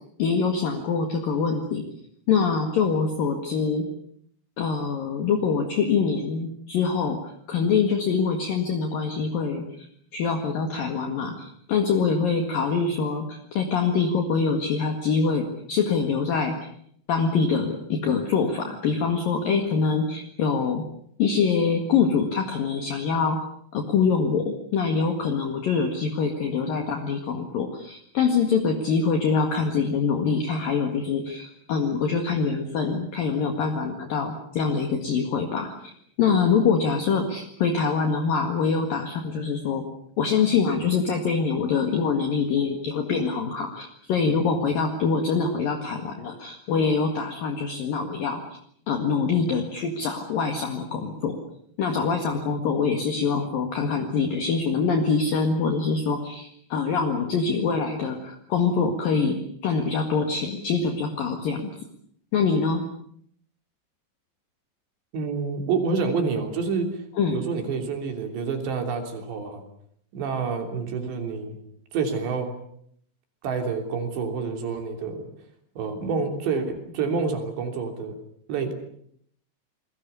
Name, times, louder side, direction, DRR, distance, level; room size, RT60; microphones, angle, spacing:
voice 1, 0.2-1.9 2.3-3.9 4.6-9.9 10.1-16.6 17.1-20.8 21.2-23.4 23.7-35.9 36.2-39.9 40.2-48.4 48.9-51.4 51.8-61.7 62.3-62.9 67.2-67.4, left 5 dB, 55° left, 4 dB, 3.2 m, -24 dB
voice 2, 65.1-66.9 67.3-69.6 70.1-71.6 71.9-72.5 73.4-75.3 75.8-78.2 78.5-78.7, right 5 dB, 65° right, 5 dB, 5.3 m, -28 dB
28.5 x 21.5 x 7.0 m, 0.67 s
omnidirectional pair, 5.5 m